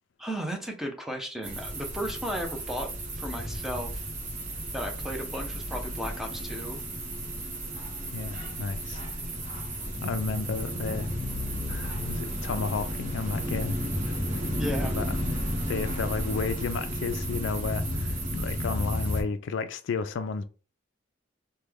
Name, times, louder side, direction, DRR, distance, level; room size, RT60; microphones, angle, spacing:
voice 1, 0.2-2.9 3.2-4.0 4.7-6.8 14.6-15.0, equal, ahead, 0.6 m, -34 dB
sound 1, 1.4-19.2, equal, 40° right, 1.0 m, -33 dB
voice 2, 8.1-9.0 10.0-11.1 11.7-13.8 14.0-15.1 15.7-20.4, left 4 dB, 65° left, 0.3 m, -32 dB
3.1 x 2.2 x 3.4 m
head